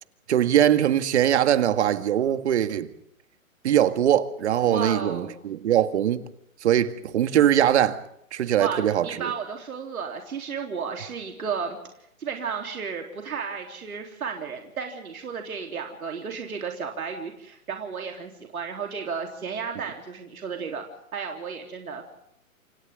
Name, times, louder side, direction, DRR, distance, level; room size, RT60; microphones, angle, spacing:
voice 1, 0.3-2.9 3.6-6.2 6.6-8.0 8.3-9.3, right 10 dB, 50° right, 1.8 m, -21 dB
voice 2, 4.7-5.4 8.6-11.8 12.2-20.8 21.1-22.1, right 6 dB, 85° right, 3.7 m, -33 dB
28.0 x 28.0 x 3.8 m
hypercardioid pair, 150°, 42 cm